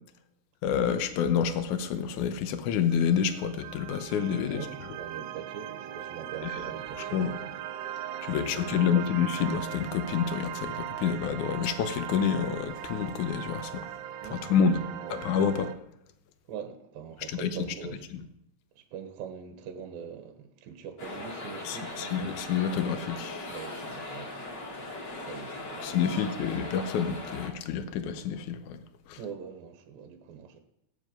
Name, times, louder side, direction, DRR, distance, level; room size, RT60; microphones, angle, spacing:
voice 1, 0.6-4.7 6.4-6.5 7.1-7.4 8.2-13.9 14.3-14.8 15.1-15.7 17.3-17.6 18.1-18.2 21.6-23.6 25.8-28.8 29.1-29.2, left 7 dB, 75° left, 1.8 m, -28 dB
sound 1, 2.9-15.8, right 11 dB, 85° right, 2.9 m, -39 dB
voice 2, 4.5-7.6 8.3-9.0 14.2-15.2 16.5-18.0 18.8-22.4 23.5-24.4 24.8-24.9 25.2-26.5 29.2-30.6, right 7 dB, 70° right, 2.6 m, -43 dB
sound 2, 21.0-27.5, left 2 dB, 35° left, 2.0 m, -39 dB
16.5 x 9.8 x 5.3 m
omnidirectional pair, 4.8 m